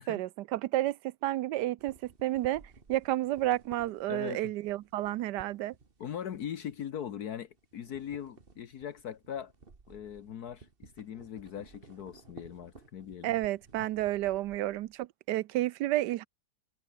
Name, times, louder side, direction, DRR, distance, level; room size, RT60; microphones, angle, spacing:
voice 1, 0.0-2.6 2.9-5.7 13.2-16.3, right 15 dB, 90° right, 1.3 m, -31 dB
sound 1, 1.8-7.2 7.5-15.0, right 4 dB, 35° right, 2.0 m, -56 dB
voice 2, 4.1-4.5 6.0-9.5 9.9-13.4, left 9 dB, 70° left, 1.6 m, -40 dB
omnidirectional pair, 1.8 m